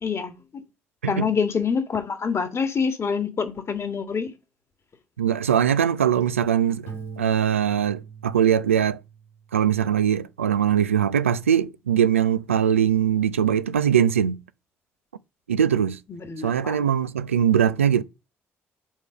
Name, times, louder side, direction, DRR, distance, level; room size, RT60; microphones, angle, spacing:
voice 1, 0.0-0.6 1.1-4.3 16.1-16.8, left 6 dB, 40° left, 1.7 m, -26 dB
voice 2, 5.2-6.9 7.2-9.0 9.5-14.4 15.5-16.0 16.4-18.0, right 9 dB, 85° right, 0.4 m, -21 dB
Piano, 6.9-9.6, right 6 dB, 85° left, 3.5 m, -40 dB
7.2 x 4.7 x 6.7 m
figure-of-eight pair, 45°, 7 cm